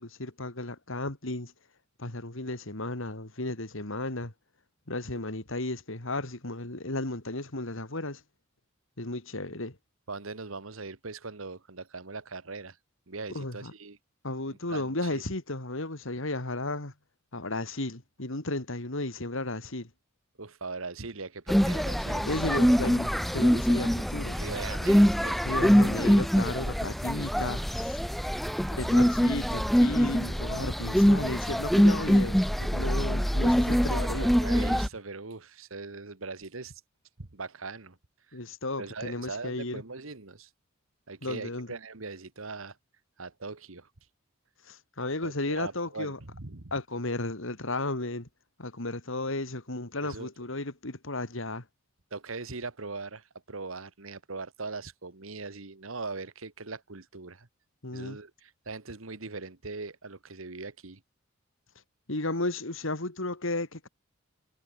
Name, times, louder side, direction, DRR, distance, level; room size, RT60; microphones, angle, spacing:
voice 1, 0.0-1.5 2.0-4.3 4.9-8.2 9.0-9.8 13.3-13.7 14.2-16.9 17.3-19.9 22.2-24.4 25.4-28.0 28.7-34.3 38.3-39.8 41.2-41.7 44.7-46.2 46.7-48.3 48.6-51.6 57.8-58.2 62.1-63.9, left 2 dB, 65° left, 3.1 m, -34 dB
voice 2, 10.1-12.8 13.1-14.0 14.7-15.2 20.4-22.3 24.3-25.4 33.9-36.8 37.2-38.0 38.3-38.4 38.8-40.5 41.1-42.8 43.2-43.9 45.2-46.7 50.0-50.3 52.1-57.5 57.9-61.0, right 3 dB, 75° right, 1.6 m, -40 dB
sound 1, 21.5-34.9, equal, ahead, 0.5 m, -24 dB
head